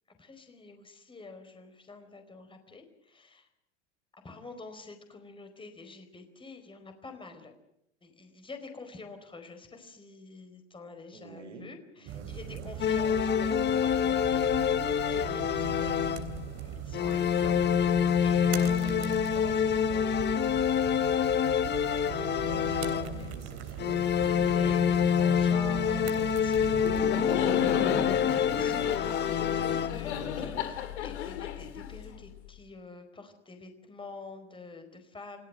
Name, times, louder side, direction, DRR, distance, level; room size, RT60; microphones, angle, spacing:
voice 1, 0.1-3.5 4.2-7.5 8.0-22.2 23.1-23.3 23.6-23.8 24.1-35.5, left 3 dB, 15° left, 7 dB, 4.6 m, -47 dB
voice 2, 11.1-12.7 22.1-24.1, right 4 dB, 85° right, 6 dB, 5.1 m, -48 dB
sound 1, 12.1-27.0, right 10 dB, 45° right, 3.5 m, -40 dB
sound 2, 12.8-16.5 16.9-23.4 23.8-30.2, left 8 dB, 30° left, 1.5 m, -27 dB
Laughter, 26.6-32.4, left 8 dB, 70° left, 3.0 m, -34 dB
29.5 x 17.5 x 7.8 m, 0.80 s
hypercardioid pair, 90°, 35 cm